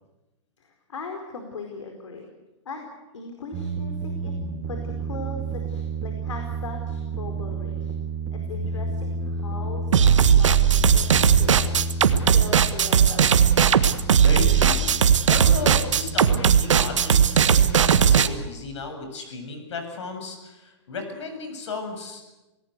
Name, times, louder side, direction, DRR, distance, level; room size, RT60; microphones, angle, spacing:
voice 1, 0.6-2.3 2.6-2.9 3.1-7.9 8.3-11.6 12.2-13.6, left 4 dB, 85° left, 3 dB, 4.6 m, -39 dB
sound 1, 3.5-18.1, right 2 dB, 20° right, 3.8 m, -31 dB
sound 2, 9.9-18.3, right 8 dB, 90° right, 1.6 m, -18 dB
voice 2, 13.9-14.9 15.3-22.2, left 3 dB, 70° left, 6 dB, 7.6 m, -34 dB
28.0 x 18.0 x 8.2 m, 1.0 s
hypercardioid pair, 150°, 15 cm